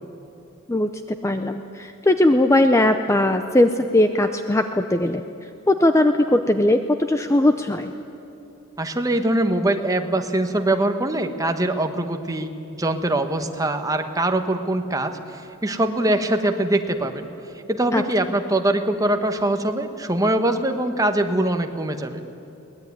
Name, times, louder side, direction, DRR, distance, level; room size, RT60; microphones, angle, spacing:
voice 1, 1.2-5.2 5.7-7.9 17.9-18.0, left 1 dB, 15° left, 8 dB, 0.5 m, -19 dB
voice 2, 8.8-17.3 17.7-22.2, right 1 dB, 15° right, 6 dB, 1.2 m, -23 dB
23.0 x 19.0 x 9.6 m, 2.9 s
head